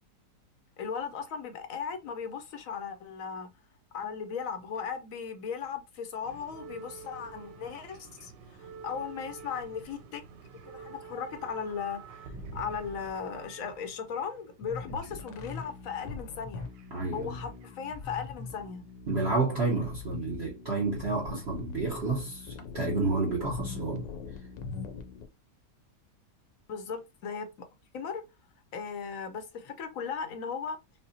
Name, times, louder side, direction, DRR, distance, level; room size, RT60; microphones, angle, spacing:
voice 1, 0.8-3.5 3.9-8.3 8.6-10.2 10.7-16.7 17.1-18.8 26.7-27.5 27.9-28.2 28.7-30.8, left 6 dB, 65° left, 0.8 m, -37 dB
sound 1, 6.2-15.7 16.6-17.7 17.9-18.2 19.1-19.2, right 4 dB, 85° right, 1.3 m, -48 dB
sound 2, 14.6-25.3, left 5 dB, 85° left, 1.4 m, -41 dB
voice 2, 16.9-17.4 19.1-24.1, right 3 dB, 50° right, 0.9 m, -30 dB
5.5 x 2.1 x 2.6 m
omnidirectional pair, 1.9 m